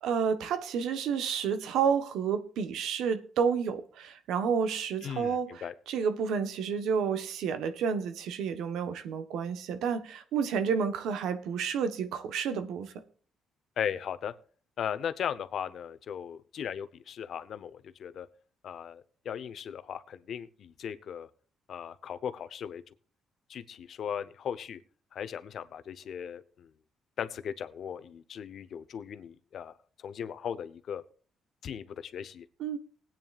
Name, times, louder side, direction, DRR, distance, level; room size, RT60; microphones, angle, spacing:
voice 1, 0.0-12.9 32.6-32.8, right 6 dB, 85° right, 1.0 m, -30 dB
voice 2, 5.0-5.7 13.8-14.3 14.8-18.3 18.6-21.3 21.7-22.8 23.5-24.8 25.1-26.7 27.2-29.7 30.0-31.0 31.6-32.4, left 8 dB, 65° left, 0.8 m, -37 dB
19.5 x 9.0 x 2.4 m
cardioid pair, 90°, 0 cm